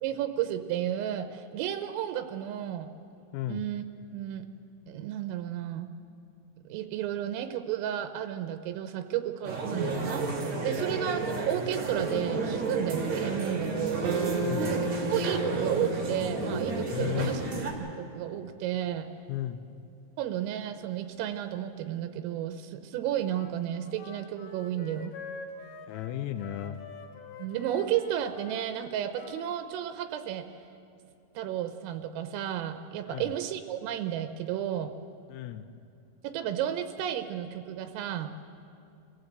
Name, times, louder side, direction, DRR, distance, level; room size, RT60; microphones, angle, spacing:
voice 1, 0.0-2.9 3.5-3.8 4.1-4.5 4.9-5.9 6.7-10.3 10.6-14.0 14.6-17.4 17.8-19.1 20.2-25.1 27.4-30.5 31.4-34.9 36.2-38.3, right 11 dB, 85° right, 8 dB, 3.4 m, -32 dB
voice 2, 3.3-3.7 10.7-11.0 14.4-14.8 16.9-17.3 19.3-19.7 25.9-26.8 33.1-33.3 35.3-35.7, left 13 dB, 90° left, 9 dB, 3.5 m, -35 dB
sound 1, 9.4-17.7, right 3 dB, 40° right, 1.9 m, -31 dB
sound 2, 14.0-18.4, right 4 dB, 60° right, 2.5 m, -36 dB
Wind instrument woodwind instrument, 23.2-29.6, left 4 dB, 60° left, 3.3 m, -46 dB
26.5 x 15.5 x 7.9 m, 2.5 s
omnidirectional pair, 6.0 m